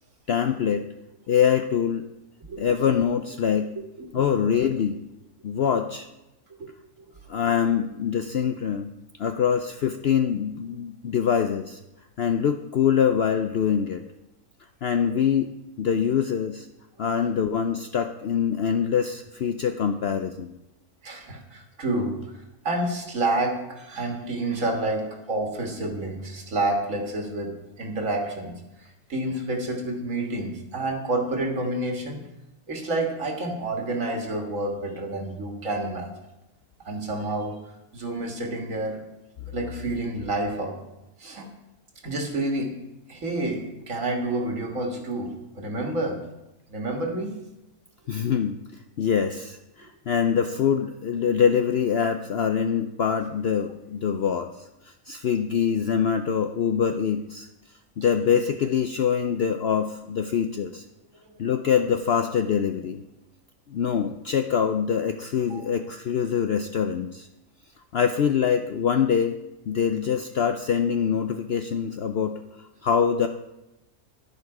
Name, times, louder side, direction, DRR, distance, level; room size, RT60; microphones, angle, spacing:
voice 1, 0.3-0.8 1.3-2.0 2.6-3.7 4.1-5.0 5.4-6.1 7.3-8.9 9.2-11.8 12.2-14.0 14.8-15.5 15.8-16.7 17.0-20.6 48.1-57.5 58.0-60.8 61.4-63.0 63.7-67.3 67.9-69.4 69.7-72.4 72.8-73.3, left 7 dB, 65° left, 7 dB, 0.6 m, -24 dB
voice 2, 2.4-2.8 4.0-4.2 6.6-6.7 7.0-7.1 17.0-17.3 21.0-32.2 32.7-36.1 36.8-37.6 37.9-39.0 39.5-40.8 41.2-41.5 42.0-42.7 43.1-46.2 46.7-47.4 65.5-65.7 69.7-69.8, right 2 dB, 60° right, 2 dB, 2.0 m, -29 dB
11.0 x 10.5 x 4.8 m, 0.94 s
omnidirectional pair, 1.6 m